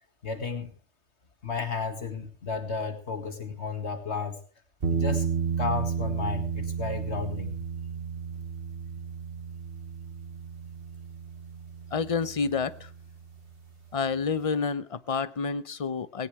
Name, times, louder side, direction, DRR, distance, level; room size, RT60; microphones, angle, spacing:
voice 1, 0.2-0.7 1.4-4.4 4.9-5.3 5.6-7.6, left 5 dB, 70° left, 8 dB, 2.2 m, -33 dB
sound 1, 4.8-13.8, right 6 dB, 55° right, 1.6 m, -33 dB
voice 2, 11.9-12.9 13.9-16.3, left 5 dB, 35° left, 15 dB, 0.8 m, -29 dB
18.5 x 17.5 x 3.3 m, 0.35 s
omnidirectional pair, 1.2 m